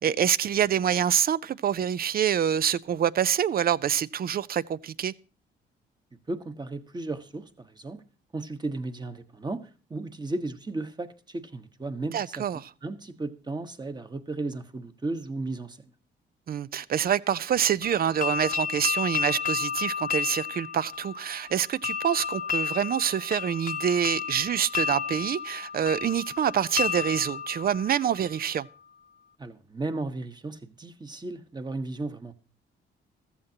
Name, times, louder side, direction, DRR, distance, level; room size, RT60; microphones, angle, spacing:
voice 1, 0.0-5.1 12.1-12.7 16.5-28.7, right 9 dB, 50° right, 0.5 m, -26 dB
voice 2, 6.3-8.0 8.3-9.6 9.9-12.4 12.8-15.9 29.4-32.3, right 2 dB, 20° right, 1.3 m, -35 dB
sound 1, 17.8-28.6, left 6 dB, 45° left, 0.9 m, -32 dB
14.5 x 14.0 x 2.9 m
cardioid pair, 90°, 20 cm